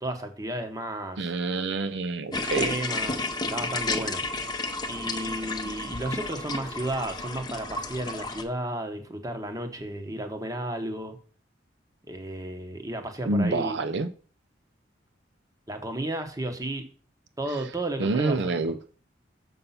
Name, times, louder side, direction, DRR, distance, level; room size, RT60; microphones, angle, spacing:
voice 1, 0.0-1.3 2.3-4.2 4.9-11.2 12.1-13.8 15.7-16.9 17.4-18.8, right 1 dB, 20° right, 1.0 m, -33 dB
voice 2, 1.2-2.7 13.3-14.1 18.0-18.8, right 3 dB, 65° right, 0.5 m, -27 dB
sound 1, 2.3-8.4, left 3 dB, 20° left, 0.7 m, -32 dB
6.9 x 5.5 x 5.6 m
head